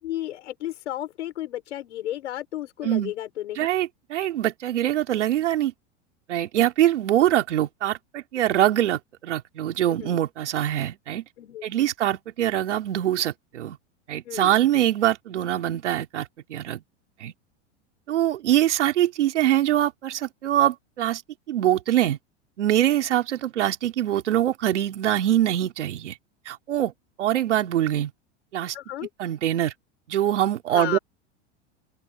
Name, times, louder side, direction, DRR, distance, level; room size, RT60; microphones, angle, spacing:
voice 1, 0.0-3.7 9.9-10.2 11.4-11.7 14.3-14.5 28.7-29.1 30.7-31.0, left 13 dB, 80° left, 5.4 m, -33 dB
voice 2, 2.8-3.1 3.6-5.7 6.3-11.2 11.6-13.8 14.1-16.8 17.2-17.3 18.1-21.2 21.5-22.2 22.6-26.2 26.5-26.9 27.2-28.1 28.5-28.8 29.2-29.7 30.1-31.0, right 12 dB, 85° right, 3.8 m, -23 dB
open air
hypercardioid pair, 105°, 34 cm